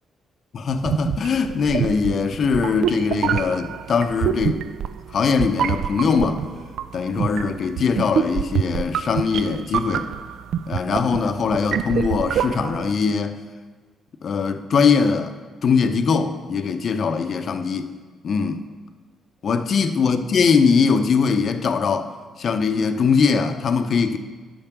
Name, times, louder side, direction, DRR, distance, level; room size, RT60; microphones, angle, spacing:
voice 1, 0.5-4.6 5.1-6.4 6.9-10.1 10.7-13.4 14.2-15.3 15.6-17.9 18.2-18.6 19.4-22.1 22.4-24.2, left 5 dB, 55° left, 8 dB, 0.7 m, -21 dB
sound 1, 0.8-12.9, right 9 dB, 70° right, 0.3 m, -26 dB
9.0 x 5.6 x 6.0 m, 1.4 s
cardioid pair, 90°, 0 cm